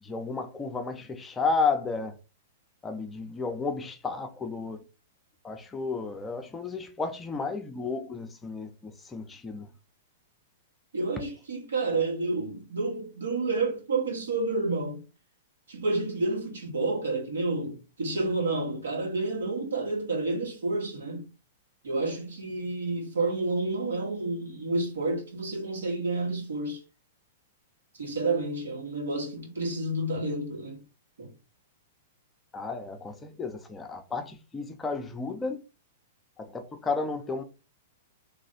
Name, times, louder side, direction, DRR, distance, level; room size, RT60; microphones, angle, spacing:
voice 1, 0.0-2.2 2.8-4.9 5.4-9.7 32.5-35.6 36.4-37.4, left 4 dB, 15° left, 0.6 m, -32 dB
voice 2, 10.9-15.0 15.7-21.2 21.8-26.8 28.0-30.8 31.2-31.3, right 2 dB, 80° right, 1.9 m, -30 dB
3.2 x 2.6 x 4.2 m
hypercardioid pair, 115°, 0 cm